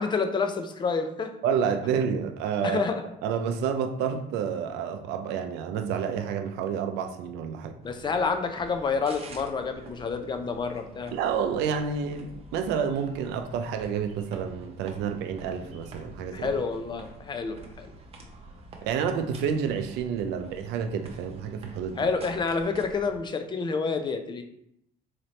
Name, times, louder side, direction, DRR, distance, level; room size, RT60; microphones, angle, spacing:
voice 1, 0.0-1.3 2.6-3.0 7.8-11.2 16.3-17.9 22.0-24.4, left 4 dB, 25° left, 0.4 m, -28 dB
voice 2, 1.4-2.8 3.2-7.8 11.1-16.5 18.8-22.1, right 7 dB, 90° right, 0.4 m, -29 dB
sound 1, 7.8-23.2, right 2 dB, 35° right, 0.7 m, -48 dB
4.1 x 2.8 x 3.1 m
cardioid pair, 110°, 17 cm